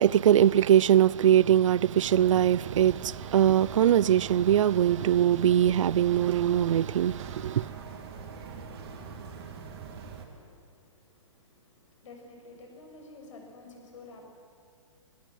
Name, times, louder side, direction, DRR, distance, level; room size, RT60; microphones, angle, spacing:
voice 1, 0.0-7.7, right 10 dB, 70° right, 0.5 m, -22 dB
sound 1, 2.0-10.3, right 5 dB, 50° right, 3.5 m, -43 dB
voice 2, 9.8-14.2, left 3 dB, 65° left, 6.9 m, -51 dB
20.0 x 19.0 x 9.4 m
hypercardioid pair, 150°, 17 cm